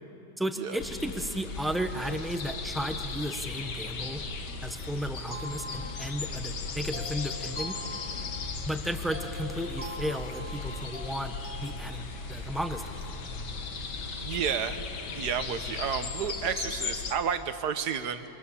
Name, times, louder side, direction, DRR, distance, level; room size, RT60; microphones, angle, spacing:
voice 1, 0.4-4.2 4.6-7.8 8.7-11.3 11.6-13.0, equal, ahead, 6 dB, 0.8 m, -34 dB
sound 1, 0.8-17.2, left 4 dB, 80° left, 2.0 m, -37 dB
sound 2, 1.5-16.3, right 1 dB, 25° right, 2.6 m, -47 dB
sound 3, 5.3-6.3 6.9-8.6 9.1-11.8, equal, 55° left, 4.5 m, -43 dB
voice 2, 14.2-14.8 15.1-18.2, right 7 dB, 70° right, 10 dB, 1.6 m, -31 dB
28.5 x 25.0 x 7.2 m, 3.0 s
omnidirectional pair, 1.8 m